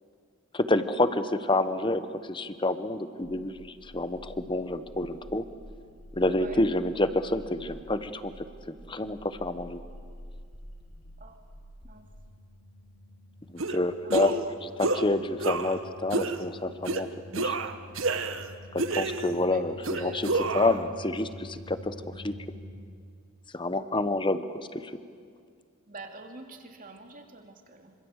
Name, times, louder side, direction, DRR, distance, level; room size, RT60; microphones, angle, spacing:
voice 1, 0.5-2.0 2.3-3.5 3.9-5.4 6.2-8.3 8.7-9.8 13.7-17.1 17.4-17.5 18.7-21.9 22.2-22.3 23.5-24.8, left 2 dB, 25° left, 11 dB, 1.1 m, -28 dB
sound 1, 3.2-22.8, left 1 dB, 75° left, 3.9 m, -47 dB
sound 2, 13.6-13.8 14.1-14.5 14.8-15.0 15.4-15.8 16.1-16.4 16.8-17.0 17.3-18.5 18.8-19.4 19.8-20.8, right 3 dB, 70° right, 1.3 m, -29 dB
voice 2, 14.0-14.5 18.9-19.0 19.4-19.6 19.9-20.2 20.5-20.8 25.9-27.9, right 3 dB, 40° right, 4 dB, 2.5 m, -45 dB
26.5 x 26.0 x 8.2 m, 2.2 s
head